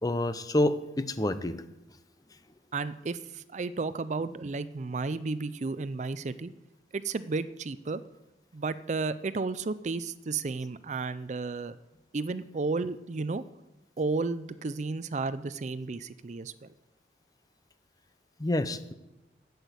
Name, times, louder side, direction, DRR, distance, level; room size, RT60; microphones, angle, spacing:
voice 1, 0.0-1.6 18.4-18.9, left 1 dB, 20° left, 12 dB, 0.7 m, -28 dB
voice 2, 2.7-6.5 6.9-8.0 8.5-11.8 12.1-13.4 14.0-16.7, right 3 dB, 40° right, 14 dB, 0.4 m, -33 dB
12.0 x 8.1 x 8.2 m, 0.98 s
head